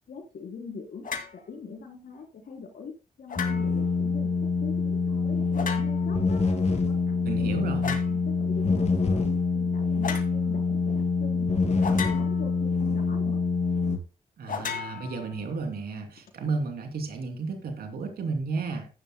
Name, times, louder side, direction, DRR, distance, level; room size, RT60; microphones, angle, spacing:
voice 1, 0.1-1.1 1.3-2.9 3.2-4.3 4.6-6.4 6.8-9.3 9.5-11.5 11.9-13.4, left 5 dB, 80° left, 3.8 m, -42 dB
sound 1, 1.0-1.4 3.3-3.9 5.5-6.2 7.8-8.2 10.0-10.3 11.8-12.6 14.5-15.6, left 6 dB, 65° left, 2.3 m, -35 dB
sound 2, 3.4-14.0, left 4 dB, 45° left, 2.8 m, -25 dB
voice 2, 7.2-8.0 14.4-18.9, right 4 dB, 90° right, 2.9 m, -32 dB
14.5 x 10.5 x 2.2 m
cardioid pair, 65°, 15 cm